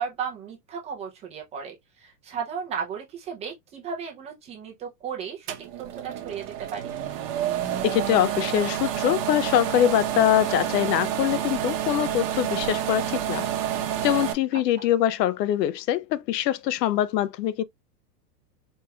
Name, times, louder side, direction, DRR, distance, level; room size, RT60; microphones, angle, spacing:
voice 1, 0.0-7.0, right 7 dB, 15° right, 0.4 m, -35 dB
sound 1, 5.5-14.3, right 10 dB, 35° right, 0.8 m, -29 dB
voice 2, 7.8-13.5 14.0-17.6, left 12 dB, 80° left, 0.6 m, -23 dB
4.4 x 3.0 x 2.3 m
supercardioid pair, 140°, 49 cm